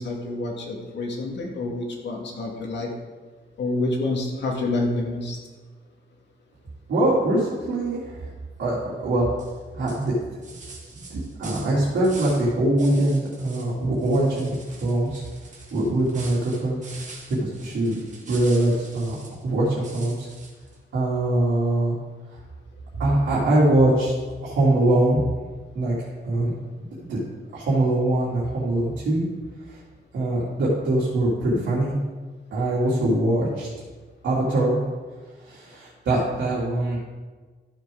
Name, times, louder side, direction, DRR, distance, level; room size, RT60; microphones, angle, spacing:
voice 1, 0.0-2.9 3.6-5.4, left 2 dB, 75° left, 0 dB, 2.2 m, -28 dB
voice 2, 6.9-8.3 8.6-9.2 9.7-10.1 11.0-15.2 15.7-16.8 17.3-18.0 18.3-19.2 19.4-20.3 20.9-21.9 23.0-24.1 24.4-25.2 25.7-26.5 27.1-27.2 27.5-29.3 29.7-29.8 30.1-31.9 32.5-33.7 34.2-34.8 35.4-37.0, right 1 dB, 85° right, -8 dB, 3.0 m, -22 dB
sound 1, 9.4-9.6 9.9-12.5 12.8-13.7 14.0-19.4 19.8-20.8, right 3 dB, 40° right, 2.0 m, -44 dB
13.5 x 7.3 x 3.9 m, 1.4 s
wide cardioid pair, 165°, 19 cm